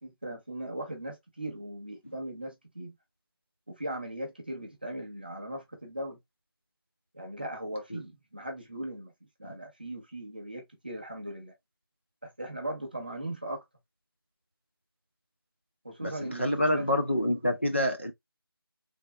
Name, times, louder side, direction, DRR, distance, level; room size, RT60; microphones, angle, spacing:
voice 1, 0.0-3.0 3.7-6.2 7.1-9.1 9.4-11.5 12.2-13.6 15.8-17.0, right 1 dB, 25° right, 0.7 m, -38 dB
voice 2, 16.0-18.1, left 1 dB, 30° left, 0.4 m, -27 dB
3.4 x 2.5 x 3.0 m
figure-of-eight pair, 180°, 13 cm